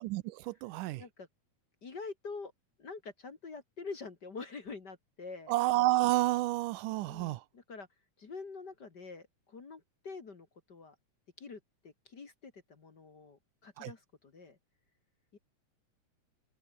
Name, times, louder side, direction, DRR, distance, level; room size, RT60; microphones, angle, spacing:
voice 1, 0.1-1.0 5.5-7.4 13.8-13.9, right 18 dB, 80° right, 2.2 m, -30 dB
voice 2, 1.8-2.5 2.8-5.5 7.1-7.9 8.2-11.0 11.4-14.6 15.3-15.4, left 4 dB, 35° left, 2.1 m, -46 dB
open air
omnidirectional pair, 3.7 m